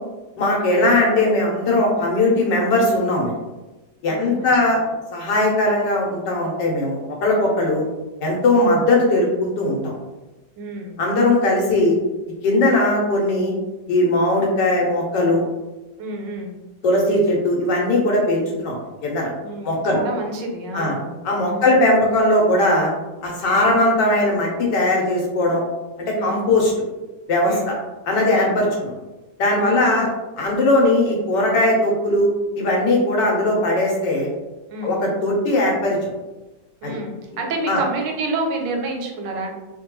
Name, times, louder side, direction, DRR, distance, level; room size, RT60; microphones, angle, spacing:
voice 1, 0.4-3.4 4.0-4.8 5.1-7.8 8.2-9.9 11.0-12.0 12.4-13.5 13.9-15.4 16.8-18.8 19.0-19.3 19.6-20.0 20.7-20.9 21.2-22.9 23.2-25.6 26.0-26.7 27.3-27.6 28.1-28.9 29.4-30.1 30.4-34.3 34.8-36.1 36.8-37.0 37.7-37.8, left 1 dB, 85° left, -1 dB, 1.4 m, -19 dB
voice 2, 4.1-4.8 10.6-11.0 16.0-16.6 19.4-21.1 21.5-21.7 26.1-26.5 27.4-27.7 28.3-28.6 29.6-30.1 34.7-35.0 36.8-39.5, right 2 dB, 90° right, 1 dB, 1.3 m, -29 dB
3.2 x 2.2 x 3.0 m, 1.1 s
omnidirectional pair, 1.9 m